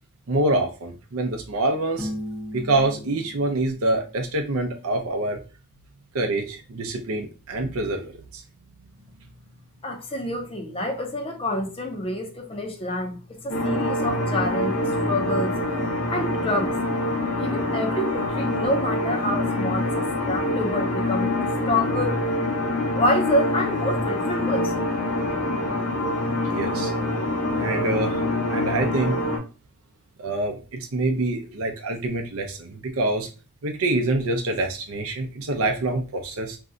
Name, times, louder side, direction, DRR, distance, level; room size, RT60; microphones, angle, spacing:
voice 1, 0.3-2.1 2.5-5.4 6.1-8.4 26.4-26.9 27.5-28.2 28.5-29.2 30.2-33.3 33.6-36.6, right 2 dB, 70° right, 0.5 m, -26 dB
Piano, 2.0-4.7, equal, ahead, 0.9 m, -37 dB
voice 2, 9.8-15.8 16.1-16.8 17.1-22.2 22.9-24.8, left 1 dB, 25° left, 0.6 m, -28 dB
sound 1, 13.5-29.4, left 1 dB, 85° left, 0.8 m, -25 dB
2.6 x 2.2 x 3.7 m
head